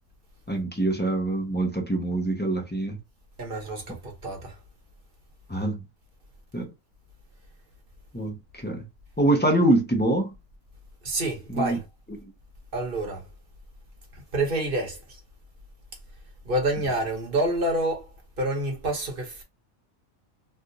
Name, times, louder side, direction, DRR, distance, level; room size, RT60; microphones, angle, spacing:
voice 1, 0.5-3.0 5.5-5.8 6.5-6.7 8.1-8.8 9.2-10.3 11.5-11.8, right 1 dB, 10° left, 0.6 m, -24 dB
voice 2, 3.4-4.6 11.0-11.8 12.7-13.2 14.1-15.2 16.4-18.1 18.4-19.4, right 1 dB, 45° right, 1.2 m, -28 dB
3.4 x 2.5 x 2.6 m
omnidirectional pair, 1.4 m